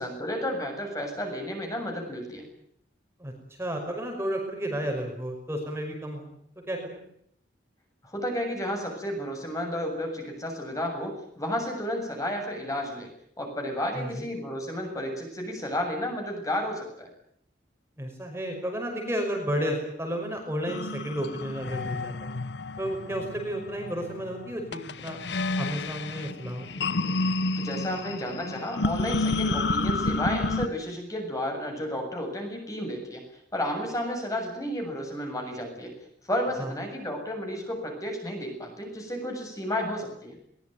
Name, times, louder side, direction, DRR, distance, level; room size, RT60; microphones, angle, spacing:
voice 1, 0.0-2.5 8.0-13.1 13.4-17.1 27.6-33.2 33.5-35.9 36.3-40.4, equal, 20° left, 3 dB, 7.4 m, -32 dB
voice 2, 3.6-6.3 6.7-7.0 13.9-14.2 18.0-22.4 22.8-25.2 25.6-26.9 36.6-36.7, equal, 15° right, 2 dB, 5.5 m, -32 dB
sound 1, 20.7-30.7, left 3 dB, 70° left, 0.9 m, -30 dB
22.5 x 21.0 x 9.4 m, 0.69 s
head